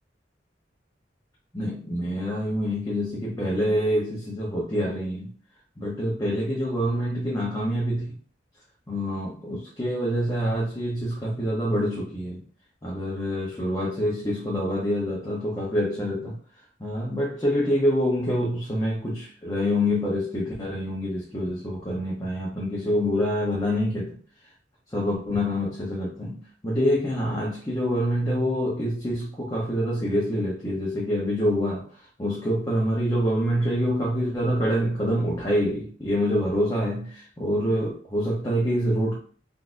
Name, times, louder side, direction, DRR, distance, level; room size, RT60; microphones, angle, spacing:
voice 1, 1.5-5.3 5.8-8.1 8.9-12.4 12.8-16.4 16.8-24.2 24.9-31.8 32.2-39.2, equal, 20° left, -5 dB, 0.7 m, -26 dB
3.8 x 2.5 x 2.5 m, 0.43 s
head